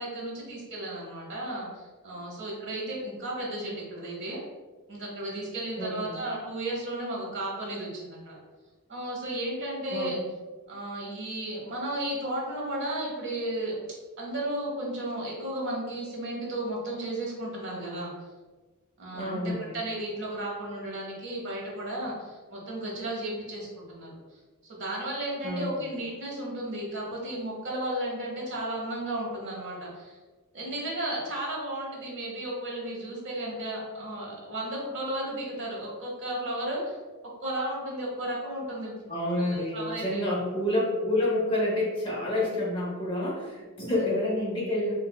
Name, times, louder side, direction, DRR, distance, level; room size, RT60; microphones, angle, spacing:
voice 1, 0.0-4.4 4.9-8.4 8.9-10.2 10.7-13.8 14.2-18.1 19.0-24.2 24.6-30.2 30.5-37.0 37.4-38.9 39.3-40.2 43.8-44.1, right 1 dB, 55° right, -3 dB, 0.9 m, -34 dB
voice 2, 5.8-6.2 9.9-10.1 19.1-19.8 25.4-25.9 39.1-44.9, left 1 dB, 25° left, -4 dB, 0.7 m, -28 dB
3.2 x 3.2 x 2.2 m, 1.3 s
head